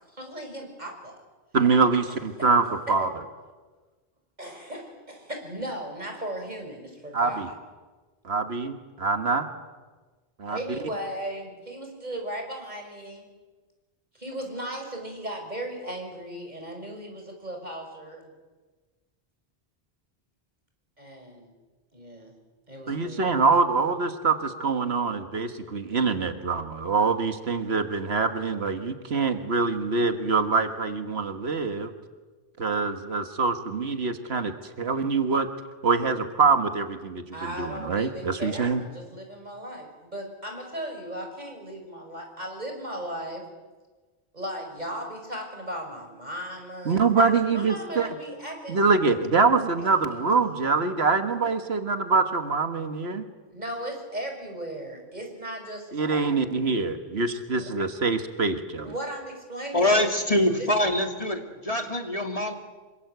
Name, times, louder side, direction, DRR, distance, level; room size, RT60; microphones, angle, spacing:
voice 1, 0.1-1.2 2.4-2.5 2.9-3.1 4.4-7.5 10.5-13.2 14.1-18.3 21.0-21.5 21.9-22.3 22.7-23.4 37.3-43.5 44.3-47.0 47.5-48.8 53.5-56.6 57.6-57.7 58.8-60.7, right 1 dB, 45° right, 3 dB, 5.8 m, -37 dB
voice 2, 1.5-3.1 7.1-7.5 8.2-9.5 10.4-10.6 22.9-31.9 32.6-35.5 35.8-37.2 37.6-38.8 46.9-48.1 48.7-53.2 55.9-58.9, right 4 dB, 90° right, 7 dB, 1.8 m, -24 dB
voice 3, 59.7-62.5, left 1 dB, 35° left, 4 dB, 2.6 m, -24 dB
27.0 x 25.0 x 8.1 m, 1.3 s
omnidirectional pair, 1.0 m